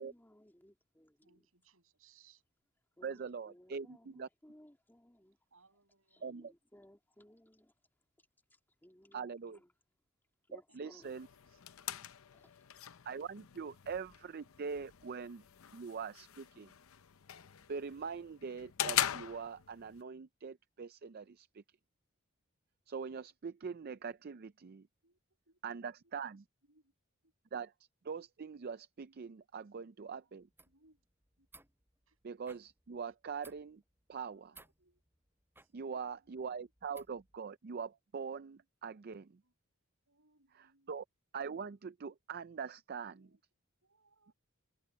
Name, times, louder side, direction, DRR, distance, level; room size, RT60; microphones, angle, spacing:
voice 1, 0.0-1.5 3.0-5.4 6.1-7.7 8.8-9.7 10.5-11.1 12.3-12.5, equal, 10° left, 2.5 m, -61 dB
voice 2, 1.2-2.4 5.5-6.2 11.2-11.3 11.7-12.0 25.0-25.2 25.5-25.6 26.7-26.8 30.7-31.0 34.6-35.0 39.4-39.5 40.1-40.9 43.1-43.4 43.9-44.3, right 4 dB, 80° right, 7.8 m, -69 dB
voice 3, 3.0-4.3 6.2-6.5 9.1-9.6 10.5-11.3 13.1-15.4 15.7-16.7 17.7-21.6 22.9-24.9 25.6-26.4 27.5-27.7 28.0-30.5 32.2-33.8 34.1-34.6 35.7-39.3 40.5-41.0 41.3-43.3, right 6 dB, 45° right, 0.4 m, -43 dB
sound 1, 11.0-20.0, left 11 dB, 90° left, 0.7 m, -41 dB
sound 2, 30.4-37.4, right 3 dB, 10° right, 7.3 m, -63 dB
head